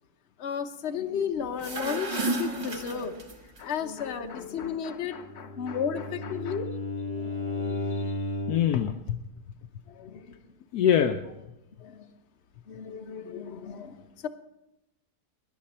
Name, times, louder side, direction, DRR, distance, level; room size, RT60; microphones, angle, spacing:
voice 1, 0.4-3.3 3.6-5.2 5.6-6.7 7.0-8.3 9.9-10.4 11.8-12.1 12.7-14.3, left 7 dB, 45° left, 1.0 m, -34 dB
sound 1, 1.4-3.6, right 2 dB, 25° right, 0.8 m, -32 dB
voice 2, 4.0-5.8 6.5-6.6 8.5-9.2 10.7-11.3, left 9 dB, 70° left, 1.0 m, -28 dB
Bowed string instrument, 5.1-8.8, left 2 dB, 5° left, 2.2 m, -33 dB
19.5 x 10.5 x 4.3 m
omnidirectional pair, 1.9 m